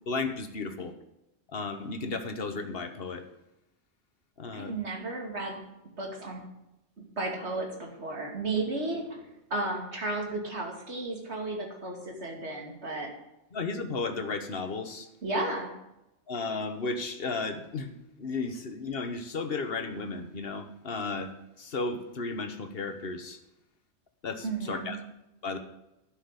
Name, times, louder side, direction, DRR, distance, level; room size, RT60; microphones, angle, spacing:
voice 1, 0.1-0.9 1.5-3.3 4.4-4.7 13.5-15.1 16.3-21.3 21.6-23.4 24.2-25.0 25.4-25.6, left 3 dB, 60° left, 8 dB, 1.4 m, -34 dB
voice 2, 4.5-5.6 6.0-6.4 7.2-13.1 15.2-15.7 24.4-24.9, right 2 dB, 70° right, 1 dB, 2.7 m, -33 dB
11.5 x 6.5 x 8.1 m, 0.88 s
omnidirectional pair, 1.2 m